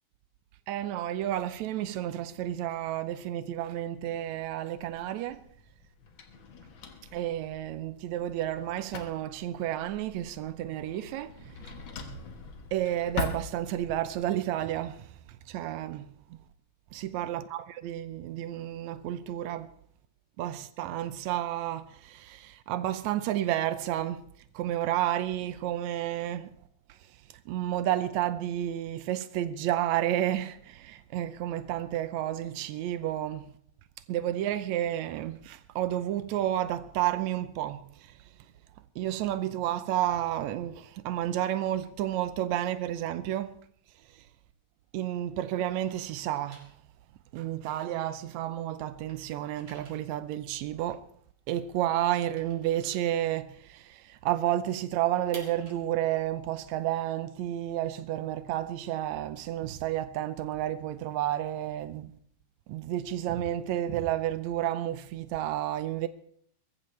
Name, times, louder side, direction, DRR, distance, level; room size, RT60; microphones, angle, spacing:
voice 1, 0.7-5.5 7.1-11.7 12.7-16.4 16.9-19.7 20.4-24.3 24.5-26.5 26.9-33.5 34.1-38.3 38.9-43.6 44.1-44.3 44.9-46.8 47.3-51.0 51.5-62.2 62.7-66.1, right 12 dB, 80° right, 1.6 m, -31 dB
Drawer open or close, 4.8-14.1, left 4 dB, 60° left, 1.3 m, -42 dB
sound 1, 43.7-45.0 45.3-48.5 48.8-53.8 54.2-54.3 54.6-58.3, right 3 dB, 50° right, 4.3 m, -55 dB
22.0 x 14.5 x 3.2 m
omnidirectional pair, 4.0 m